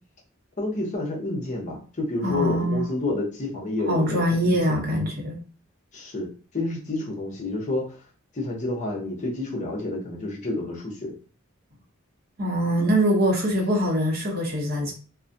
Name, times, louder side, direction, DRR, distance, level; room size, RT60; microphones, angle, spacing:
voice 1, 0.6-4.8 5.9-6.3 6.5-8.0 8.3-11.1, left 2 dB, 35° left, -2 dB, 0.7 m, -29 dB
voice 2, 2.2-2.8 3.9-5.4 12.4-14.9, equal, 50° right, 0 dB, 0.7 m, -23 dB
2.3 x 2.1 x 2.6 m, 0.37 s
head